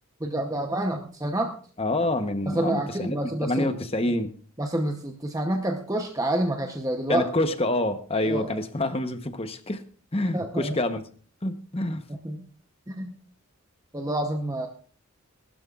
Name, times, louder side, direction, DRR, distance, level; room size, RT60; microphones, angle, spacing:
voice 1, 0.2-1.6 2.5-3.7 4.6-7.2 8.3-8.6 10.3-10.8 12.1-12.5 12.9-13.2 13.9-14.7, right 1 dB, 15° right, 0.8 m, -28 dB
voice 2, 1.8-4.3 7.1-9.8 10.1-11.0 11.4-12.1, left 1 dB, 25° left, 0.9 m, -27 dB
19.5 x 12.5 x 2.4 m
head